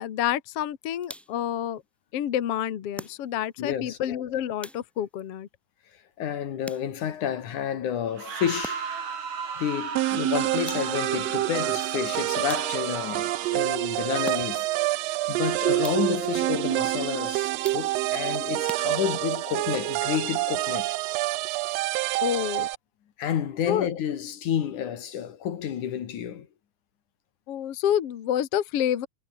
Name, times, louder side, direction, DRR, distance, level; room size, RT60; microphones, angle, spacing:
voice 1, 0.0-1.8 2.1-5.5 22.2-22.7 23.7-23.9 27.5-29.1, left 10 dB, 55° left, 2.2 m, -28 dB
sound 1, 1.0-1.5 2.9-3.6 4.6-5.2 6.6-7.2 8.6-9.1 10.7-11.2 12.5-13.1 14.2-14.8 15.8-16.3 17.6-18.2 18.7-19.4, equal, ahead, 3.5 m, -44 dB
voice 2, 3.6-4.0 6.2-8.9 9.6-14.7 15.3-21.0 23.2-26.5, left 9 dB, 75° left, 3.3 m, -30 dB
sound 2, 8.1-13.8, right 6 dB, 60° right, 4.5 m, -36 dB
sound 3, 10.0-22.8, right 17 dB, 90° right, 1.4 m, -27 dB
omnidirectional pair, 3.6 m